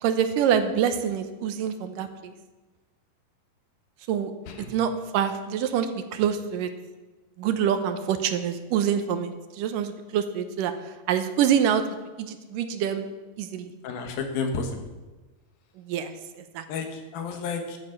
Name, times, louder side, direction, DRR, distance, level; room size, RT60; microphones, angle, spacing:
voice 1, 0.0-2.3 4.1-4.3 4.6-6.7 7.4-10.7 11.1-11.8 12.2-13.1 13.4-13.7 15.8-16.1 16.5-16.6, right 8 dB, 75° right, 8 dB, 2.4 m, -26 dB
voice 2, 13.8-14.7 16.7-17.8, left 5 dB, 90° left, 4 dB, 3.3 m, -31 dB
12.0 x 9.7 x 7.2 m, 1.2 s
omnidirectional pair, 4.1 m